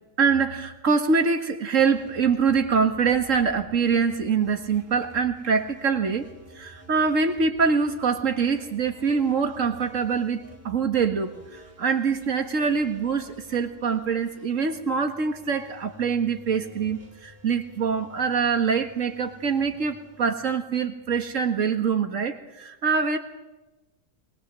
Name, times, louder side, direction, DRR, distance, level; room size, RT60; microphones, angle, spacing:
voice 1, 0.2-6.3 6.6-23.2, right 5 dB, 70° right, 7 dB, 2.1 m, -24 dB
sound 1, 1.8-21.3, equal, 10° right, 5.6 m, -51 dB
22.0 x 21.5 x 7.6 m, 1.0 s
omnidirectional pair, 1.4 m